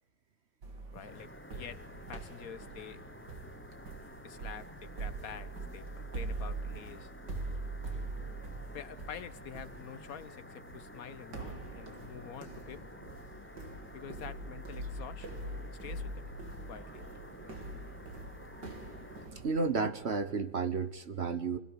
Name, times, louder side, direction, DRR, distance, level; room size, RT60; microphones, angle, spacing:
sound 1, 0.6-20.1, right 2 dB, 85° right, 3.4 m, -43 dB
voice 1, 0.9-1.8 2.1-3.0 4.2-7.1 8.7-13.0 13.9-15.5 15.8-16.3 16.7-17.0 17.4-17.6, left 8 dB, 60° left, 13 dB, 1.5 m, -47 dB
sound 2, 1.0-19.3, left 2 dB, 10° left, 0.5 m, -52 dB
sound 3, 1.0-1.6 1.8-3.5 3.9-6.0 6.3-8.3 8.6-8.8 9.2-10.8 11.2-11.8 12.1-13.2 13.5-15.6 16.0-16.1 16.3-16.6 16.9-20.2, right 1 dB, 65° right, 4.2 m, -60 dB
voice 2, 19.4-21.6, right 4 dB, 45° right, 11 dB, 1.3 m, -32 dB
28.0 x 17.0 x 9.1 m, 0.95 s
omnidirectional pair, 1.8 m